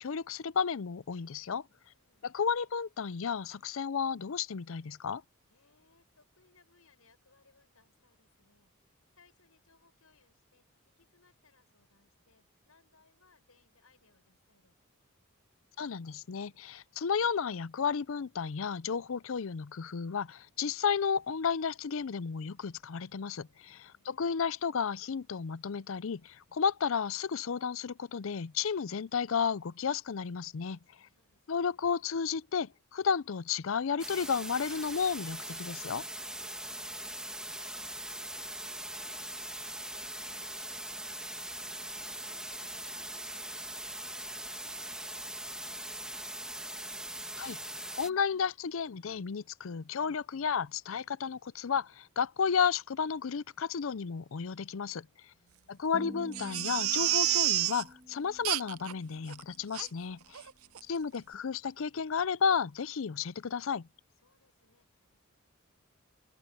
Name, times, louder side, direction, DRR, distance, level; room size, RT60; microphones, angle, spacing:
voice 1, 0.0-1.6 2.2-5.2 15.8-30.8 31.5-36.0 47.4-47.6 48.0-55.1 55.7-60.5 60.9-63.9, left 6 dB, 65° left, 0.5 m, -32 dB
voice 2, 1.7-2.3 5.5-14.8 23.6-24.2 30.9-31.9 36.3-46.6 55.3-55.9 60.2-60.9 64.2-65.2, left 4 dB, 80° left, 7.7 m, -68 dB
sound 1, 34.0-48.1, right 1 dB, 5° right, 1.8 m, -41 dB
sound 2, 55.9-60.3, equal, 20° right, 1.1 m, -50 dB
Crying sobbing, 56.3-57.8 58.4-58.9 59.3-59.4 59.7-59.9 60.3-60.5 60.8-60.9, right 14 dB, 90° right, 0.7 m, -29 dB
open air
head